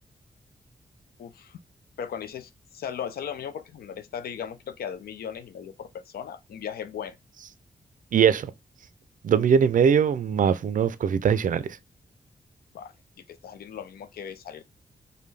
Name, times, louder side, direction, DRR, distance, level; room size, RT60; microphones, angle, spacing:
voice 1, 1.2-1.6 2.0-7.2 12.7-12.9 13.3-14.6, left 8 dB, 85° left, 0.4 m, -37 dB
voice 2, 8.1-8.5 9.2-11.8, right 7 dB, 60° right, 0.4 m, -21 dB
5.3 x 2.2 x 3.2 m
wide cardioid pair, 125°, 15 cm